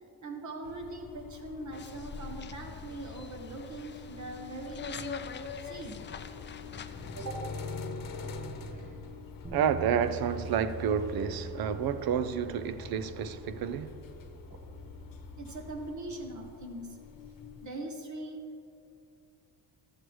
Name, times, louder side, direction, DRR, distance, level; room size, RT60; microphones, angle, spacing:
voice 1, 0.2-5.3 5.6-6.0 7.1-7.5 8.7-9.0 14.5-14.6 15.4-17.0 17.6-18.7, right 2 dB, 45° right, 1.4 m, -41 dB
sound 1, 0.6-17.7, left 4 dB, 55° left, 1.0 m, -45 dB
sound 2, 1.7-7.3, left 7 dB, 30° left, 0.4 m, -44 dB
Bass guitar, 9.4-15.7, right 4 dB, 10° right, 1.4 m, -44 dB
voice 2, 9.5-13.9, right 8 dB, 60° right, 0.6 m, -30 dB
12.5 x 7.6 x 3.1 m
cardioid pair, 90°, 40 cm